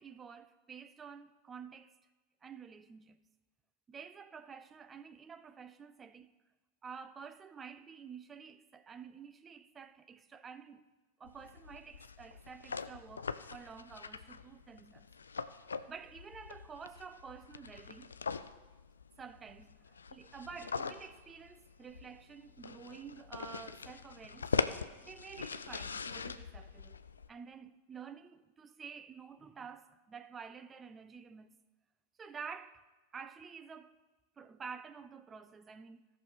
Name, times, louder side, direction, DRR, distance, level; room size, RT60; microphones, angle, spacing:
voice 1, 0.0-2.0 2.4-3.2 3.9-6.3 6.8-10.8 11.2-15.1 15.9-18.1 19.2-24.5 25.0-27.0 27.3-31.6 32.2-32.8 33.1-34.0 34.4-36.1, right 6 dB, 20° right, 0.5 m, -50 dB
sound 1, 11.3-27.3, left 5 dB, 70° left, 0.4 m, -42 dB
16.5 x 6.1 x 3.6 m
figure-of-eight pair, 90°, 0 cm